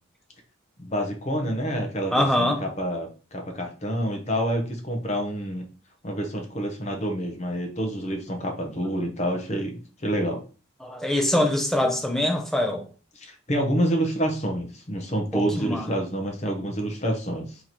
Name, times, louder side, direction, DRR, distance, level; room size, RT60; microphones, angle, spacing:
voice 1, 0.8-5.6 6.0-10.4 13.2-17.6, equal, 35° left, 0.7 m, -28 dB
voice 2, 2.1-2.6 10.8-12.9 15.3-15.9, left 1 dB, ahead, 0.5 m, -23 dB
3.0 x 2.9 x 4.0 m
head